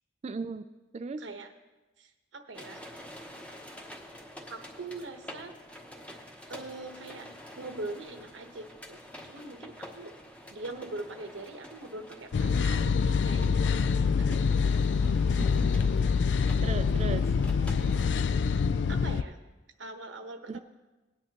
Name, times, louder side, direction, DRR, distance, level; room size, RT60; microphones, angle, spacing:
voice 1, 0.2-0.6 0.9-1.2 15.4-15.7 16.6-17.3 20.5-20.6, right 4 dB, 35° right, 9 dB, 0.3 m, -36 dB
voice 2, 1.2-1.5 2.0-2.8 4.5-5.5 6.5-7.3 7.6-10.1 10.5-13.6 14.2-14.4 18.9-19.4 19.8-20.6, right 2 dB, 90° right, 6 dB, 1.1 m, -42 dB
sound 1, 2.5-18.1, equal, 5° left, 1.1 m, -48 dB
sound 2, 12.3-19.2, left 5 dB, 70° left, 0.3 m, -25 dB
18.5 x 9.7 x 3.0 m, 1.1 s
head